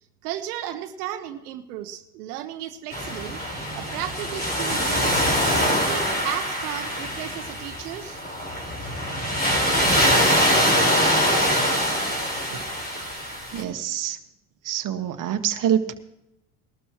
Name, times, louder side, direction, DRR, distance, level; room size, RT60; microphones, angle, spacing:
voice 1, 0.2-3.4 3.7-5.2 5.5-8.2, right 12 dB, 80° right, 7 dB, 1.0 m, -34 dB
sound 1, 2.9-13.6, equal, 20° left, 4.5 m, -23 dB
voice 2, 13.5-14.2 14.6-15.9, right 10 dB, 45° right, 6 dB, 1.4 m, -26 dB
20.0 x 12.5 x 3.0 m, 0.85 s
hypercardioid pair, 85°, 45 cm